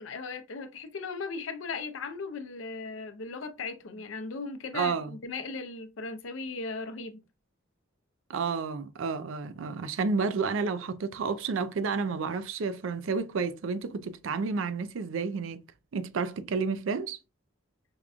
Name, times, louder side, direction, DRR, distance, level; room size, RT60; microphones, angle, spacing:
voice 1, 0.0-7.2, left 4 dB, 80° left, 0.6 m, -37 dB
voice 2, 4.7-5.2 8.3-15.6 15.9-17.2, right 4 dB, 80° right, 0.4 m, -30 dB
5.1 x 2.4 x 2.3 m
head